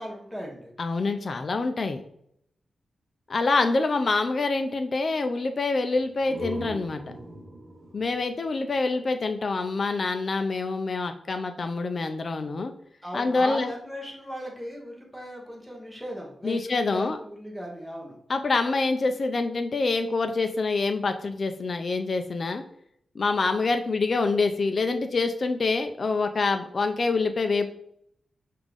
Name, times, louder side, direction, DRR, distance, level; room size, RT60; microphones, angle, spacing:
voice 1, 0.0-0.7 13.0-18.2, equal, ahead, -2 dB, 0.9 m, -37 dB
voice 2, 0.8-2.0 3.3-7.0 7.9-12.7 13.1-13.7 16.4-17.2 18.3-22.6 23.2-27.7, left 3 dB, 40° left, 6 dB, 0.3 m, -26 dB
sound 1, 5.9-9.6, right 1 dB, 45° right, 1.1 m, -41 dB
5.2 x 2.5 x 3.3 m, 0.72 s
wide cardioid pair, 165°, 0 cm